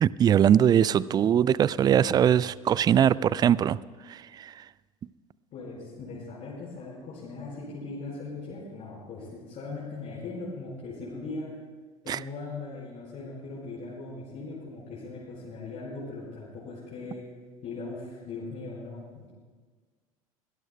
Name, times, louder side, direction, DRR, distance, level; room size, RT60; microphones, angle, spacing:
voice 1, 0.0-3.8 4.1-4.5 12.1-12.2, right 9 dB, 20° right, 21 dB, 0.3 m, -21 dB
voice 2, 5.5-11.6 12.0-17.2 17.6-19.4, left 3 dB, 40° left, -7 dB, 4.8 m, -39 dB
24.5 x 18.0 x 2.2 m, 1.5 s
figure-of-eight pair, 75°, 18 cm